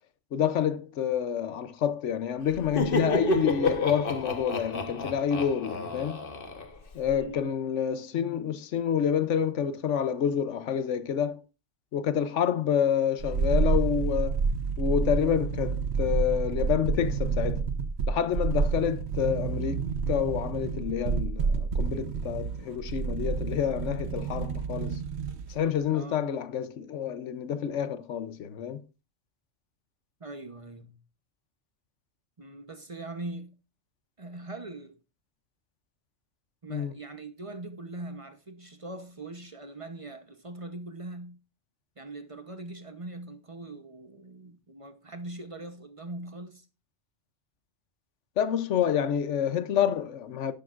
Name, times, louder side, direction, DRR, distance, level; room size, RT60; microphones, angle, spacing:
voice 1, 0.3-6.2 6.9-11.4 11.9-14.4 14.8-17.6 18.1-19.8 20.1-25.0 25.5-28.8 36.7-36.9 48.4-50.5, left 8 dB, 80° left, 1.1 m, -28 dB
Laughter, 2.5-7.2, left 2 dB, 50° left, 1.4 m, -30 dB
sound 1, 13.2-25.6 25.8-25.9, right 5 dB, 65° right, 1.1 m, -29 dB
voice 2, 25.9-26.3 30.2-31.0 32.4-33.5 34.2-35.0 36.6-41.4 42.0-46.7, right 2 dB, 30° right, 0.9 m, -41 dB
11.5 x 10.5 x 2.5 m
omnidirectional pair, 1.2 m